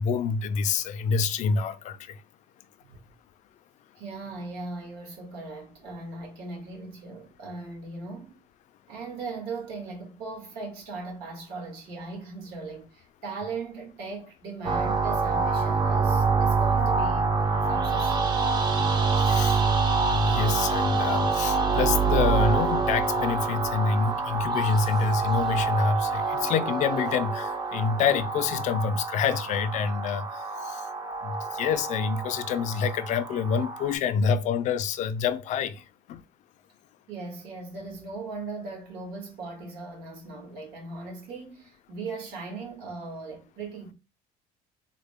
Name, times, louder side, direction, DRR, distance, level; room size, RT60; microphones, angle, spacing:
voice 1, 0.0-2.0 19.2-19.6 20.1-30.8 31.2-35.8 36.1-36.2, left 5 dB, 50° left, 0.4 m, -27 dB
voice 2, 4.0-8.4 8.9-17.3 17.6-18.5 37.1-43.9, right 3 dB, 80° right, 1.6 m, -38 dB
sound 1, 14.6-33.9, right 4 dB, 25° right, 0.4 m, -26 dB
3.6 x 2.2 x 3.4 m
cardioid pair, 155°, 16 cm